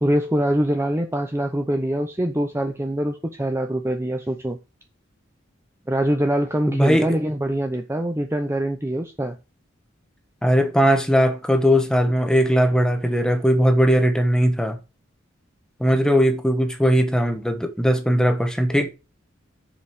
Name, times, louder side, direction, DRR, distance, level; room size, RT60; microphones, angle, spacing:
voice 1, 0.0-4.6 5.9-9.4, right 1 dB, 15° right, 0.7 m, -24 dB
voice 2, 6.7-7.1 10.4-14.8 15.8-18.9, equal, 5° left, 1.2 m, -19 dB
7.1 x 5.4 x 6.0 m
head